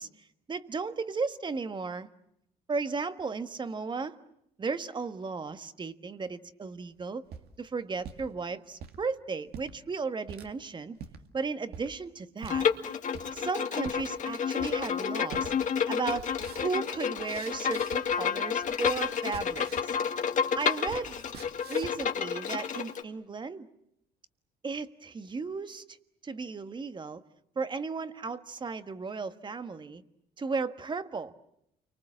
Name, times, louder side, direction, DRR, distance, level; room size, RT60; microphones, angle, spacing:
voice 1, 0.0-2.1 2.7-4.2 4.6-7.2 7.6-11.0 11.3-12.7 13.3-15.5 15.9-20.0 20.5-21.2 21.7-23.7 24.6-26.0 26.2-27.2 27.5-30.0 30.4-31.3, right 4 dB, 25° right, 11 dB, 1.5 m, -35 dB
sound 1, 7.0-8.3 8.7-9.0 9.5-9.7 10.3-10.5 11.0-11.2 11.7-11.9 12.4-12.6 13.1-13.5 13.8-14.1 14.6-15.0 15.3-15.5 15.8-18.2 18.5-20.0 20.3-22.1, right 7 dB, 70° right, 2.2 m, -46 dB
Bowed string instrument, 12.5-23.0, left 7 dB, 50° left, 2.0 m, -30 dB
30.0 x 24.5 x 7.5 m, 0.78 s
cardioid pair, 110°, 17 cm